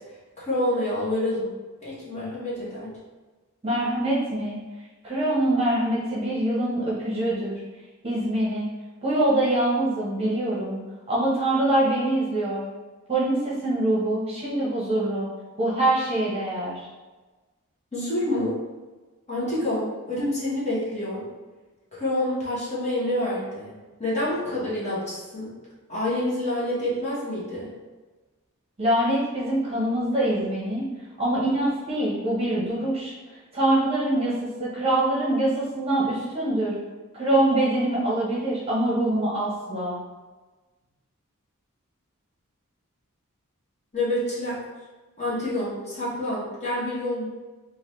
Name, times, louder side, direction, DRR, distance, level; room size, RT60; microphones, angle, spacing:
voice 1, 0.4-1.5 1.8-2.9 17.9-18.6 19.3-21.2 21.9-23.7 24.0-25.5 25.9-27.7 43.9-44.6 45.2-47.3, left 1 dB, 30° left, -8 dB, 1.2 m, -27 dB
voice 2, 3.6-4.6 5.0-7.6 8.0-8.7 9.0-10.8 11.1-12.6 13.1-15.3 15.6-16.9 28.8-30.9 31.2-33.1 33.5-34.3 34.6-36.7 37.1-40.0, right 1 dB, 30° right, -7 dB, 0.9 m, -24 dB
3.8 x 2.5 x 3.1 m, 1.2 s
head